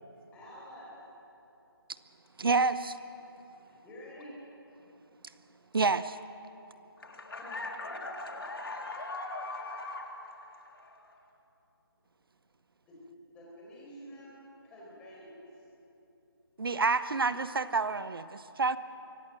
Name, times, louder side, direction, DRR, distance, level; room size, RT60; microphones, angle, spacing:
voice 1, 0.3-1.0 3.6-4.4 7.3-8.0 12.9-13.0 13.3-14.4 14.6-15.6, left 1 dB, 10° left, -5 dB, 4.4 m, -49 dB
voice 2, 2.4-3.0 5.7-6.2 16.6-18.8, right 4 dB, 65° right, 13 dB, 0.8 m, -28 dB
voice 3, 7.0-11.2, left 2 dB, 65° left, 2 dB, 3.1 m, -40 dB
24.0 x 17.0 x 7.6 m, 2.9 s
figure-of-eight pair, 165°, 13 cm